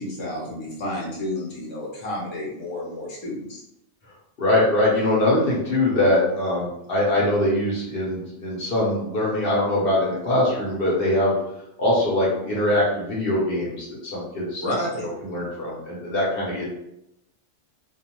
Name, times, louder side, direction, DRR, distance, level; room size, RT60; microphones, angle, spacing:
voice 1, 0.0-3.6 14.6-15.1, left 1 dB, 30° left, -5 dB, 0.6 m, -30 dB
voice 2, 4.4-11.4 11.8-14.6 15.2-16.7, left 1 dB, 55° left, -5 dB, 0.9 m, -22 dB
2.4 x 2.2 x 2.9 m, 0.82 s
omnidirectional pair, 1.2 m